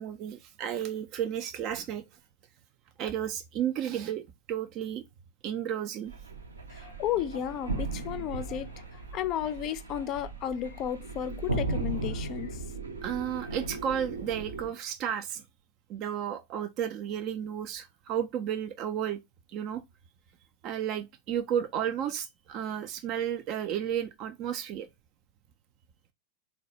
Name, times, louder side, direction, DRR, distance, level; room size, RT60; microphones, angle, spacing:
voice 1, 0.0-2.0 3.0-4.2 4.5-5.0 5.4-6.1 13.0-15.4 15.9-19.2 19.5-19.8 20.6-24.9, right 9 dB, 40° right, 0.4 m, -32 dB
sound 1, 6.1-14.7, right 3 dB, 75° right, 0.7 m, -36 dB
voice 2, 6.7-8.7 9.1-12.6, left 10 dB, 35° left, 0.4 m, -33 dB
3.9 x 2.2 x 2.6 m
figure-of-eight pair, 90°, 0 cm